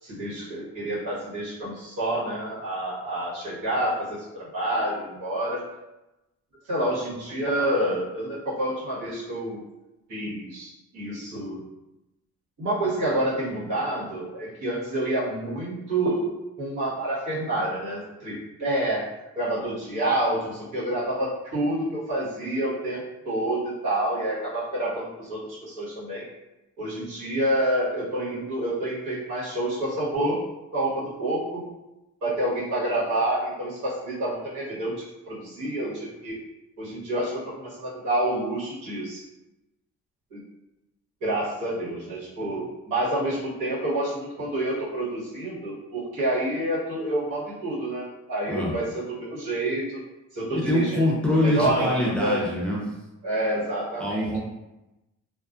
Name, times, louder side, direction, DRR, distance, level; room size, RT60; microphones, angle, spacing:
voice 1, 0.0-5.6 6.7-9.6 10.1-11.6 12.6-16.3 16.6-19.1 19.3-26.3 26.8-30.4 30.7-31.6 32.2-36.4 36.8-39.2 40.3-40.4 41.2-50.0 50.3-52.4 53.2-54.4, right 1 dB, 85° right, -9 dB, 1.5 m, -28 dB
voice 2, 50.5-52.8 54.0-54.4, left 1 dB, 5° left, -5 dB, 0.6 m, -24 dB
2.5 x 2.4 x 2.4 m, 0.97 s
cardioid pair, 90°, 30 cm